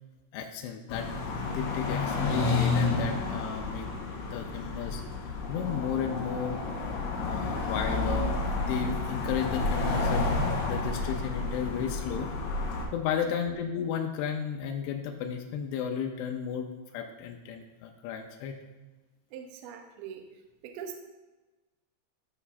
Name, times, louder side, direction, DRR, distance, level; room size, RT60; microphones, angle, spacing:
voice 1, 0.3-1.1 1.5-3.9 4.2-5.0 5.5-6.6 7.2-12.3 12.9-16.7 16.9-18.5, left 7 dB, 90° left, 3 dB, 2.3 m, -33 dB
sound 1, 0.9-12.9, left 3 dB, 75° left, 3.3 m, -30 dB
voice 2, 19.3-20.2 20.6-21.0, right 7 dB, 80° right, 4 dB, 2.2 m, -42 dB
13.0 x 5.5 x 2.5 m, 1.2 s
omnidirectional pair, 5.2 m